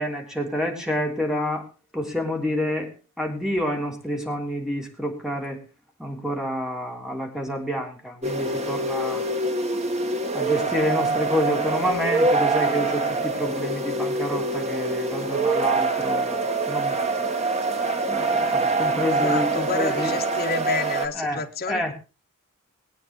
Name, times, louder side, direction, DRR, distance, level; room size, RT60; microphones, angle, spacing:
voice 1, 0.0-1.7 1.9-2.9 3.2-5.6 6.0-9.2 10.3-17.0 18.1-20.3 21.1-21.9, equal, 5° right, 2 dB, 3.4 m, -28 dB
sound 1, 8.2-21.1, right 3 dB, 30° right, 1.6 m, -25 dB
voice 2, 19.1-21.9, left 4 dB, 45° left, 2 dB, 2.0 m, -30 dB
21.5 x 9.2 x 3.2 m, 0.31 s
head